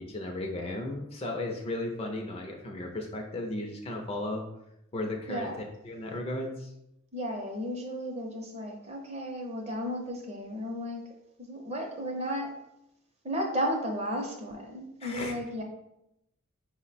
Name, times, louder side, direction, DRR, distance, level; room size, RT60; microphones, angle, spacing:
voice 1, 0.0-4.4 4.9-6.7 15.0-15.3, left 1 dB, 25° left, 2 dB, 0.4 m, -35 dB
voice 2, 7.1-11.0 11.4-12.5 13.2-15.6, equal, 30° right, 2 dB, 0.6 m, -34 dB
4.8 x 2.1 x 4.0 m, 0.83 s
head